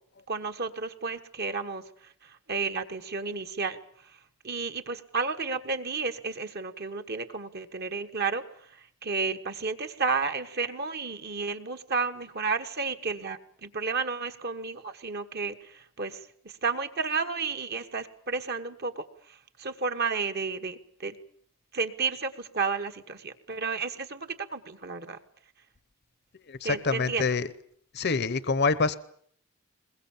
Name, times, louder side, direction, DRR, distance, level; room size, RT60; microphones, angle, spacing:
voice 1, 0.3-4.1 4.4-8.4 8.7-21.2 21.7-25.2 26.6-27.3, right 4 dB, 45° right, 8 dB, 1.3 m, -32 dB
voice 2, 26.5-27.5 27.9-28.9, left 4 dB, 50° left, 15 dB, 0.8 m, -26 dB
21.5 x 21.5 x 7.3 m, 0.62 s
head